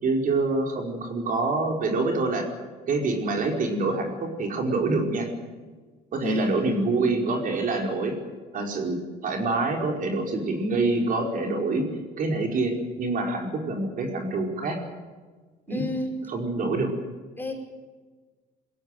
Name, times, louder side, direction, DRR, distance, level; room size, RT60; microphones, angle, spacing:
voice 1, 0.0-2.5 2.9-5.3 6.1-8.1 8.5-11.8 12.2-14.8 15.7-15.8 16.3-16.9, right 3 dB, 55° right, 2 dB, 5.0 m, -26 dB
voice 2, 6.2-6.9 15.7-16.2 17.4-17.5, left 2 dB, 10° left, 1 dB, 5.5 m, -30 dB
22.0 x 16.5 x 9.3 m, 1.4 s
cardioid pair, 110°, 17 cm